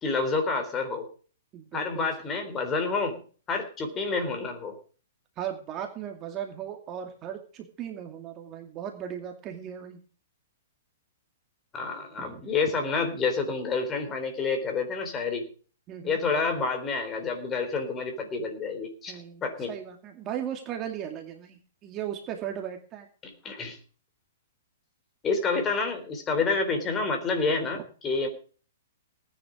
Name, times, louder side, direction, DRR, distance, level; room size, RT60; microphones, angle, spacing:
voice 1, 0.0-1.1 1.7-3.2 3.5-4.8 11.7-15.5 16.0-19.7 23.2-23.8 25.2-28.3, left 4 dB, 15° left, 6 dB, 3.7 m, -28 dB
voice 2, 1.5-2.1 5.4-10.0 12.2-12.4 15.9-16.2 19.1-23.1, right 9 dB, 25° right, 3 dB, 2.3 m, -37 dB
19.0 x 10.0 x 5.1 m, 0.41 s
hypercardioid pair, 160°, 0 cm